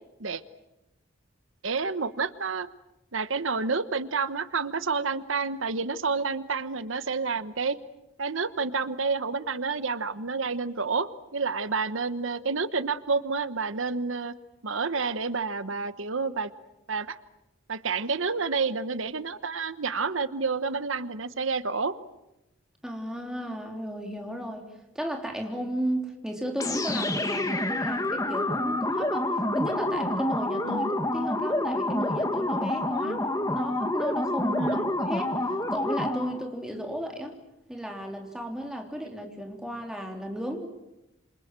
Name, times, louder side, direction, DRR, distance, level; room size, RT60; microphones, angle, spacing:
voice 1, 1.6-2.7 3.1-7.8 8.2-14.3 14.6-16.5 16.9-17.2 17.7-22.0 30.6-30.9 33.0-33.2 34.6-34.9, right 4 dB, 80° right, 13 dB, 1.1 m, -29 dB
voice 2, 22.8-24.7 24.9-37.4 37.7-40.7, right 1 dB, 5° right, 2 dB, 3.4 m, -34 dB
sound 1, 26.6-36.4, left 1 dB, 15° left, 2.0 m, -28 dB
27.5 x 27.5 x 7.6 m, 0.93 s
head